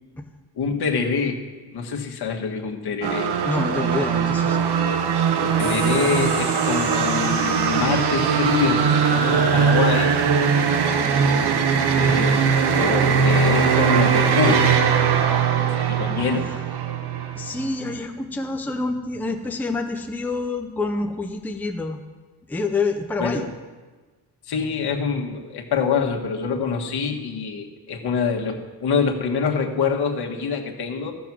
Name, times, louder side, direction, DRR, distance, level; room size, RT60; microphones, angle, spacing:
voice 1, 0.5-1.4 1.7-3.3 5.4-10.1 12.0-14.7 15.9-16.5 23.2-23.5 24.5-31.1, left 5 dB, 65° left, 1 dB, 1.6 m, -25 dB
sound 1, 3.0-17.9, right 6 dB, 70° right, 1.0 m, -20 dB
voice 2, 3.4-4.6 10.8-11.1 17.4-22.0 22.5-23.5, left 3 dB, 5° left, 3 dB, 0.6 m, -27 dB
sound 2, 5.6-20.4, right 2 dB, 45° right, 2.0 m, -39 dB
14.0 x 7.1 x 6.1 m, 1.3 s
wide cardioid pair, 155°, 41 cm